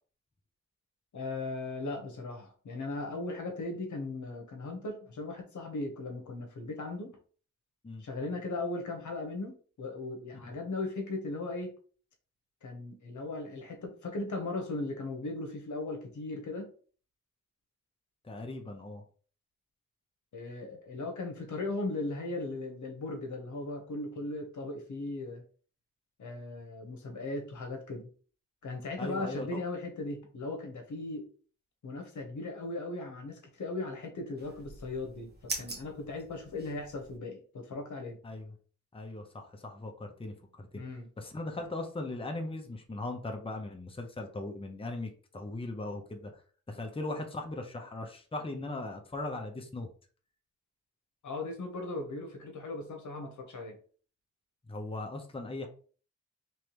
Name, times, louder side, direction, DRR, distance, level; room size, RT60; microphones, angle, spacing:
voice 1, 1.1-7.2 8.0-11.7 12.6-16.7 20.3-25.4 26.2-28.1 28.6-31.3 31.8-38.2 40.7-41.1 51.2-53.8, left 2 dB, 75° left, 3 dB, 1.0 m, -38 dB
voice 2, 18.2-19.0 29.0-29.6 38.2-38.6 38.9-40.8 41.2-46.3 46.7-49.9 54.7-55.7, left 2 dB, 20° left, 3 dB, 0.8 m, -39 dB
sound 1, 34.4-37.2, right 2 dB, 35° right, 1.1 m, -43 dB
3.4 x 3.2 x 3.0 m, 0.41 s
cardioid pair, 60°, 30 cm